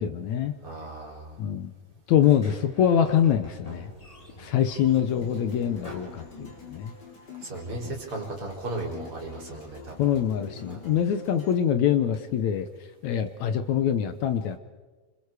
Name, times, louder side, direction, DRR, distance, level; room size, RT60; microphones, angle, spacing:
voice 1, 0.0-0.5 1.4-1.7 2.1-3.9 4.4-6.9 10.0-12.7 13.0-14.6, left 9 dB, 70° left, 10 dB, 2.1 m, -24 dB
voice 2, 0.6-1.4 7.4-10.1 10.7-10.9, right 2 dB, 45° right, -1 dB, 5.0 m, -36 dB
Sliding door, 2.2-6.9, left 1 dB, 10° left, 3.0 m, -47 dB
sound 1, 4.9-11.5, left 4 dB, 30° left, 4.4 m, -47 dB
28.0 x 26.5 x 4.9 m, 1.3 s
omnidirectional pair, 3.6 m